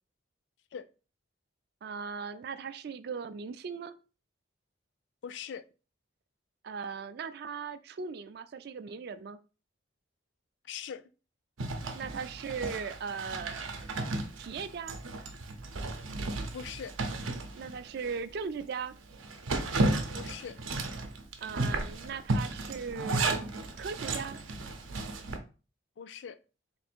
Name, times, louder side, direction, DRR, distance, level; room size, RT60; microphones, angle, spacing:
voice 1, 1.8-3.9 6.6-9.4 11.9-13.8 14.4-15.0 17.5-19.0 21.4-23.5 23.8-24.4, right 5 dB, 55° right, 0.3 m, -38 dB
voice 2, 5.2-5.6 10.7-11.0 16.5-16.9 20.1-20.6 26.0-26.4, left 7 dB, 65° left, 0.3 m, -41 dB
Zipper (clothing), 11.6-18.2 18.6-18.7 19.1-25.4, right 2 dB, 90° right, 0.7 m, -34 dB
3.3 x 2.5 x 4.4 m
head